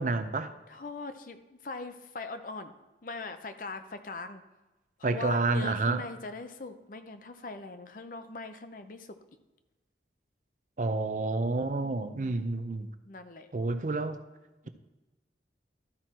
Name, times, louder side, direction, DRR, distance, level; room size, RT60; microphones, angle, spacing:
voice 1, 0.0-0.5 5.0-6.0 10.8-12.9 13.5-14.2, right 3 dB, 45° right, 0.5 m, -29 dB
voice 2, 0.7-2.7 3.0-4.4 5.0-9.1 11.8-12.4 13.0-13.5, left 3 dB, 50° left, 0.6 m, -41 dB
12.5 x 4.4 x 4.4 m
head